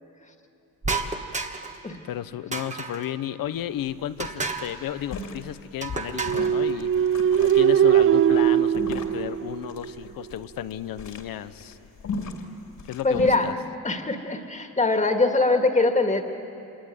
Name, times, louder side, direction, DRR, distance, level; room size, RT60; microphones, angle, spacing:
sound 1, 0.8-1.8 2.5-3.1 4.2-4.8 5.8-6.5, right 3 dB, 20° right, 1.5 m, -31 dB
voice 1, 2.0-11.8 12.8-13.6, left 11 dB, 85° left, 13 dB, 0.9 m, -33 dB
sound 2, 3.4-3.5 3.8-3.9 4.2-13.5, left 3 dB, 60° left, 2.8 m, -37 dB
sound 3, 6.1-10.0, right 9 dB, 40° right, 0.6 m, -20 dB
voice 2, 13.0-13.5 13.8-16.2, left 3 dB, 20° left, 5 dB, 2.1 m, -22 dB
26.5 x 21.5 x 9.3 m, 2.8 s
cardioid pair, 115°, 34 cm